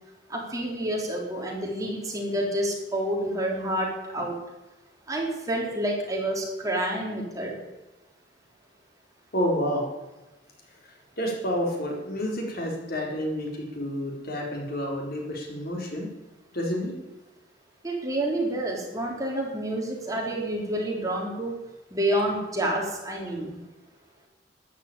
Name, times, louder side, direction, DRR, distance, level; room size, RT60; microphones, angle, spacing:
voice 1, 0.3-4.3 5.1-7.6 17.8-21.6 21.9-23.6, right 1 dB, 20° right, -1 dB, 3.9 m, -28 dB
voice 2, 9.3-9.8 10.8-16.1 16.5-16.9, equal, 55° left, 1 dB, 4.3 m, -29 dB
13.5 x 11.0 x 8.8 m, 1.0 s
head